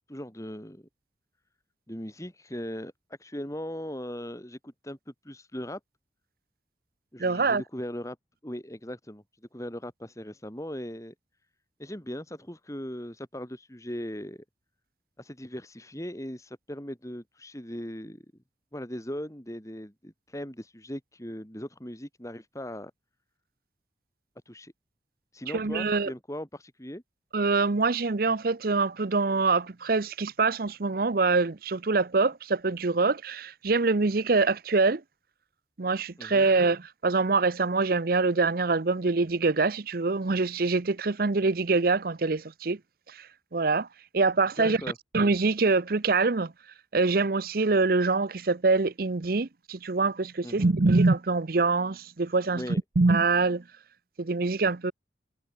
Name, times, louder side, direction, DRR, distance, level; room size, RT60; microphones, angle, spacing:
voice 1, 0.1-0.9 1.9-2.9 3.2-5.8 7.1-8.2 8.4-9.2 9.5-11.1 11.8-14.4 15.2-18.2 18.7-22.9 24.5-24.7 25.3-27.0 36.2-36.5 44.6-45.0 50.4-50.7 52.5-52.8, equal, 15° left, 3.6 m, -39 dB
voice 2, 7.2-7.6 25.5-26.1 27.3-35.0 35.8-42.8 43.2-43.3 43.5-43.9 44.1-44.8 45.1-46.5 46.9-52.6 53.0-53.6 54.2-54.9, right 3 dB, 55° right, 0.7 m, -24 dB
head